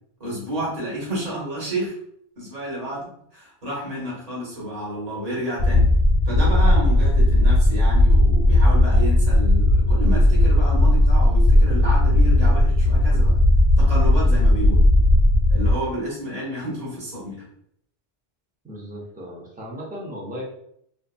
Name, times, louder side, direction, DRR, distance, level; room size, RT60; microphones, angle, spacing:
voice 1, 0.2-1.9 2.4-5.9 6.2-13.4 13.8-14.9 15.5-17.4, equal, 40° right, -6 dB, 1.2 m, -30 dB
sound 1, 5.6-15.7, left 1 dB, 55° left, 0.7 m, -16 dB
voice 2, 18.6-20.4, equal, 10° right, -3 dB, 0.5 m, -36 dB
2.5 x 2.4 x 2.3 m, 0.71 s
omnidirectional pair, 1.0 m